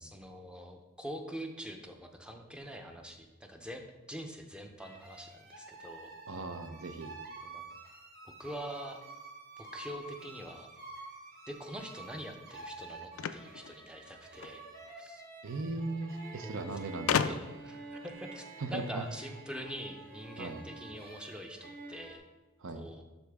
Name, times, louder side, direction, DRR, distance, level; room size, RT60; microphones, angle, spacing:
voice 1, 0.0-6.2 7.4-7.6 8.2-9.0 9.6-10.7 11.5-14.6 15.0-15.2 16.4-16.6 17.1-22.2 22.7-23.0, equal, 5° right, 4 dB, 0.6 m, -44 dB
sound 1, 4.8-22.2, right 3 dB, 45° right, 1.3 m, -49 dB
voice 2, 6.3-7.2 15.4-17.4 18.6-19.1 20.4-20.6 22.6-22.9, right 3 dB, 60° right, 8 dB, 0.7 m, -38 dB
sound 2, 13.2-14.6 15.7-15.8 16.0-16.1 17.1-17.7, left 8 dB, 65° left, 0.3 m, -32 dB
11.5 x 4.1 x 3.5 m, 1.2 s
head